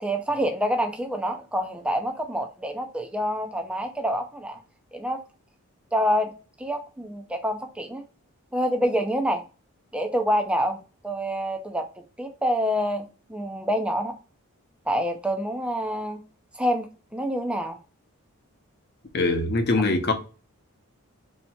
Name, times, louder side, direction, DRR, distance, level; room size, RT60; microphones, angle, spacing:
voice 1, 0.0-4.6 4.9-5.2 5.9-6.3 6.6-8.0 8.5-9.4 9.9-10.8 11.0-11.8 12.2-14.1 14.9-16.2 16.5-17.8, equal, 5° right, 0.4 m, -27 dB
voice 2, 19.1-20.1, left 2 dB, 45° left, 0.7 m, -22 dB
3.3 x 2.8 x 4.2 m
head